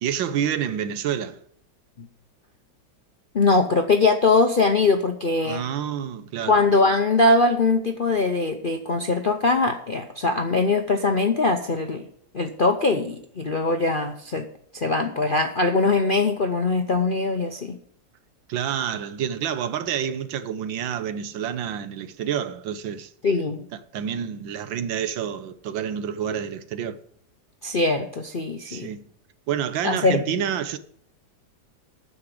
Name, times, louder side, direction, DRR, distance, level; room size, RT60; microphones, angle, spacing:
voice 1, 0.0-1.4 5.4-6.6 18.5-23.1 23.7-27.0 28.7-29.0 29.5-30.8, right 9 dB, 80° right, 1.5 m, -28 dB
voice 2, 3.3-5.6 6.5-12.1 12.3-14.5 14.7-17.8 23.2-23.7 27.6-28.9 29.8-30.2, left 3 dB, 55° left, 0.6 m, -21 dB
9.4 x 6.9 x 8.4 m
omnidirectional pair, 2.1 m